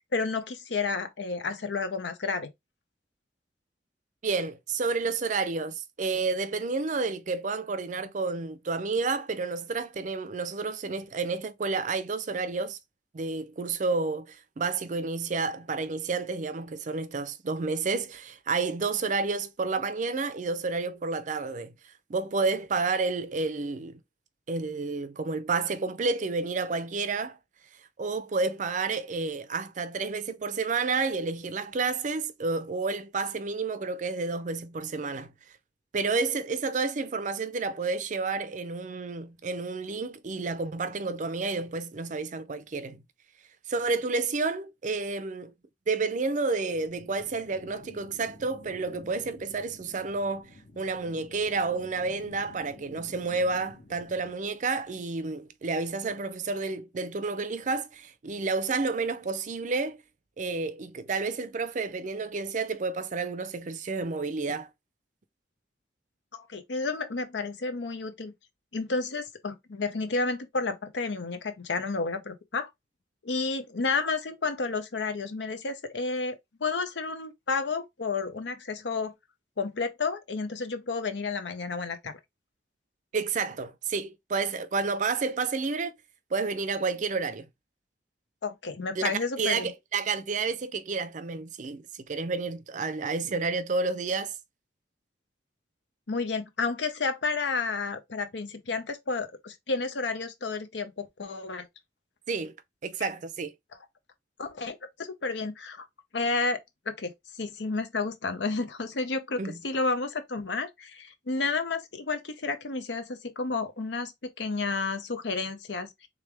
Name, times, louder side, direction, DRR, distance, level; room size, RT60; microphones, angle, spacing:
voice 1, 0.1-2.5 66.3-68.3 68.7-72.7 73.2-79.1 79.6-82.2 88.4-89.7 96.1-101.7 103.0-103.1 104.4-105.9 106.1-106.6 106.9-107.1 107.4-116.1, left 4 dB, 85° left, 0.8 m, -31 dB
voice 2, 4.2-12.8 13.1-21.7 22.1-24.0 24.5-27.4 28.0-35.3 35.9-43.0 43.7-45.5 45.9-50.5 50.8-60.0 60.4-64.7 83.1-85.9 86.3-87.5 89.0-94.3 102.3-102.5 102.8-103.5 109.4-109.6, right 4 dB, 45° right, 0.5 m, -30 dB
sound 1, 46.7-54.3, left 2 dB, 50° left, 1.0 m, -51 dB
3.5 x 3.3 x 3.3 m
head